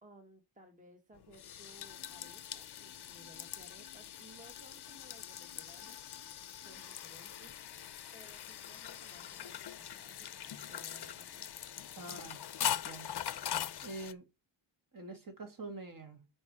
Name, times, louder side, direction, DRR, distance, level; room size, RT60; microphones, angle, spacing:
voice 1, 0.0-6.0 6.5-11.6, right 1 dB, 15° right, 1.0 m, -60 dB
sound 1, 1.1-14.1, left 10 dB, 55° left, 0.5 m, -42 dB
voice 2, 12.0-13.2 13.8-14.3 14.9-16.2, right 2 dB, 45° right, 1.9 m, -46 dB
7.2 x 4.6 x 4.8 m
wide cardioid pair, 160°, 48 cm